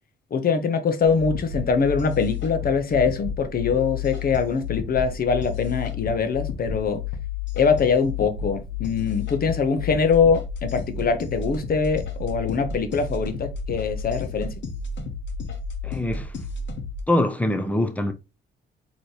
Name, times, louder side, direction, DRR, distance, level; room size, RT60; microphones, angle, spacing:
voice 1, 0.3-7.0 7.6-14.5, left 5 dB, 50° left, 0.9 m, -23 dB
sound 1, 1.0-17.0, left 6 dB, 70° left, 1.1 m, -32 dB
voice 2, 15.8-16.3 17.1-18.1, left 1 dB, 5° left, 0.7 m, -23 dB
4.0 x 3.0 x 3.3 m
cardioid pair, 90°, 20 cm